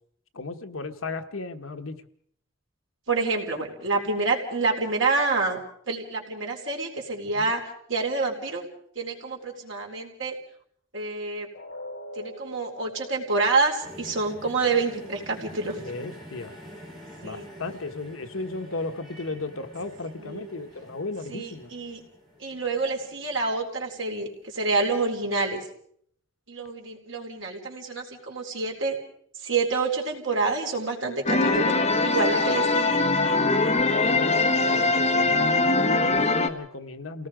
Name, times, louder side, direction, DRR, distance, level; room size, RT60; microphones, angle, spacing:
voice 1, 0.3-2.0 3.6-3.7 7.3-7.5 15.7-16.5 17.2-21.7 34.0-37.3, left 3 dB, 75° left, 7 dB, 1.3 m, -35 dB
voice 2, 3.1-5.6 5.9-7.6 7.9-8.6 9.0-10.3 10.9-11.5 12.2-15.8 17.2-17.5 20.2-20.6 21.3-22.0 22.4-25.6 26.5-29.0 29.4-31.8 32.0-33.0, right 3 dB, 65° right, 0 dB, 4.3 m, -27 dB
sound 1, 11.5-17.5 17.9-18.1 18.6-18.7, equal, 60° left, 4.2 m, -46 dB
sound 2, 13.8-24.0 24.9-25.0, equal, ahead, 6.6 m, -47 dB
sound 3, 31.3-36.5, left 3 dB, 30° left, 1.1 m, -22 dB
28.5 x 18.5 x 5.1 m, 0.64 s
head